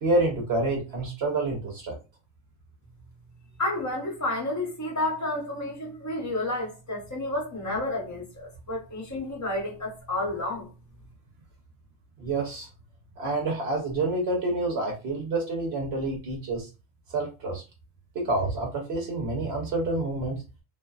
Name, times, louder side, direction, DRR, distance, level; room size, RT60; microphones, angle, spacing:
voice 1, 0.0-2.0 12.2-12.7 13.2-16.7 17.1-17.6 18.1-20.4, right 2 dB, 55° right, 0.8 m, -28 dB
voice 2, 3.6-10.7, left 1 dB, 30° left, 0.3 m, -31 dB
2.5 x 2.3 x 2.3 m
omnidirectional pair, 1.5 m